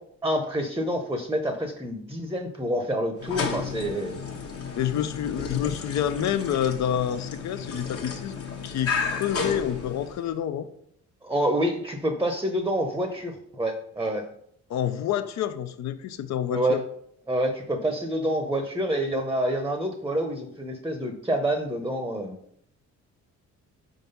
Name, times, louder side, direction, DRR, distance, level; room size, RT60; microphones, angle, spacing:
voice 1, 0.2-4.2 11.2-14.2 16.5-16.8 17.3-22.3, right 1 dB, 10° right, 5 dB, 0.7 m, -27 dB
sound 1, 3.2-10.4, left 5 dB, 50° left, 1.1 m, -33 dB
voice 2, 4.7-10.7 14.7-16.8, left 10 dB, 65° left, 12 dB, 0.6 m, -28 dB
4.6 x 3.9 x 5.3 m, 0.70 s
cardioid pair, 90°, 30 cm